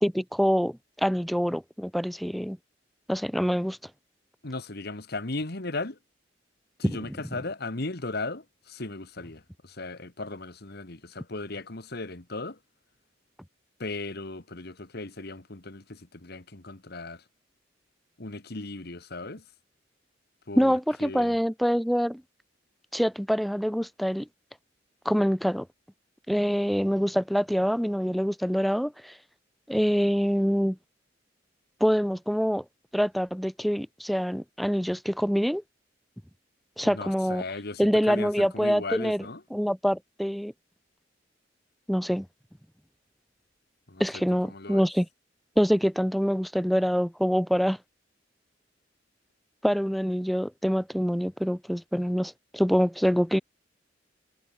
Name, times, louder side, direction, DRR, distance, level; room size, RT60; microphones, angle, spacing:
voice 1, 0.0-2.6 3.1-3.8 6.8-7.0 20.6-22.2 22.9-24.3 25.0-25.7 26.3-29.2 29.7-30.8 31.8-32.6 32.9-35.6 36.8-37.4 37.8-39.2 39.5-40.5 41.9-42.3 44.0-45.1 45.6-47.8 49.6-53.4, equal, ahead, 1.0 m, -25 dB
voice 2, 4.4-6.0 6.8-12.6 13.8-17.2 18.2-19.4 20.5-21.4 36.8-39.4 43.9-44.9, left 2 dB, 60° left, 2.0 m, -37 dB
head